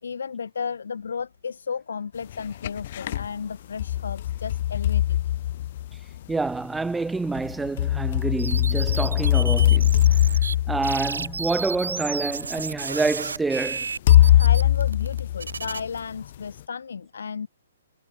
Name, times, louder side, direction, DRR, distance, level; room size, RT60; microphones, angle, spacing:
voice 1, 0.0-5.2 14.4-17.5, left 6 dB, 75° left, 4.2 m, -33 dB
sound 1, 2.3-3.3 3.8-6.2 7.4-11.8 12.6-12.7 14.1-16.0, left 13 dB, 50° left, 3.1 m, -21 dB
voice 2, 6.3-10.0 10.7-13.9, right 3 dB, 5° right, 4.2 m, -27 dB
sound 2, 8.4-10.6 10.8-15.8, right 4 dB, 85° right, 4.5 m, -32 dB
hypercardioid pair, 135°, 0 cm